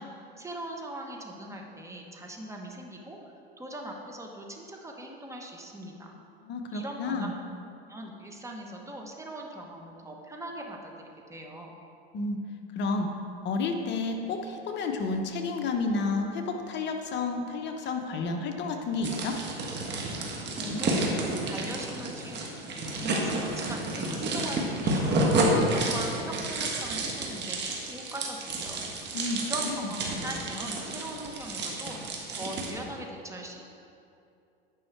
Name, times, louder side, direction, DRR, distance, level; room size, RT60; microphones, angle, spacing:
voice 1, 0.0-3.2 3.6-6.1 6.7-7.3 7.9-10.9 11.3-11.7 20.5-22.6 23.0-28.8 29.4-32.0 32.3-33.6, right 1 dB, 10° right, 0 dB, 1.0 m, -40 dB
voice 2, 6.4-7.3 12.1-12.4 12.7-13.1 13.4-19.4 29.1-29.9, left 3 dB, 35° left, 4 dB, 0.9 m, -31 dB
sound 1, 19.0-32.7, right 2 dB, 35° right, 1.5 m, -30 dB
9.5 x 5.5 x 4.6 m, 2.7 s
hypercardioid pair, 105°, 31 cm